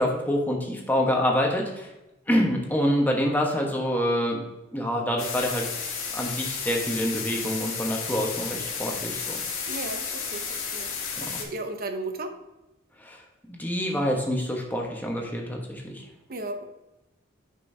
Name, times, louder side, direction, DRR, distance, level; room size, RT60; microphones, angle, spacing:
voice 1, 0.0-1.9 2.3-4.4 4.7-5.7 6.1-9.4 11.2-11.3 13.0-13.2 13.5-16.0, equal, 10° left, 0 dB, 1.2 m, -26 dB
sound 1, 5.2-11.4, left 6 dB, 80° left, 1.6 m, -32 dB
voice 2, 9.7-10.9 11.2-12.3 16.3-16.6, right 2 dB, 45° right, 7 dB, 0.8 m, -35 dB
9.9 x 5.4 x 2.7 m, 0.99 s
head